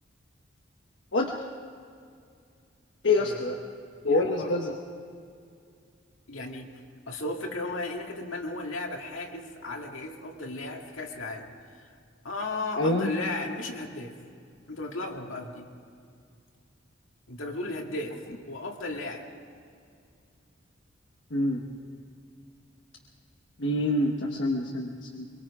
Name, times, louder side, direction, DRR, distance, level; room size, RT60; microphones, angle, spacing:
voice 1, 3.0-3.6 4.0-4.8 12.8-13.1 21.3-21.6 23.6-25.3, left 2 dB, 65° left, 0 dB, 1.2 m, -26 dB
voice 2, 4.0-4.5 6.3-6.7 7.1-11.5 11.7-11.9 12.2-14.1 14.7-15.7 17.3-19.3, left 2 dB, 80° left, 1 dB, 2.2 m, -35 dB
23.5 x 23.0 x 4.9 m, 2.3 s
head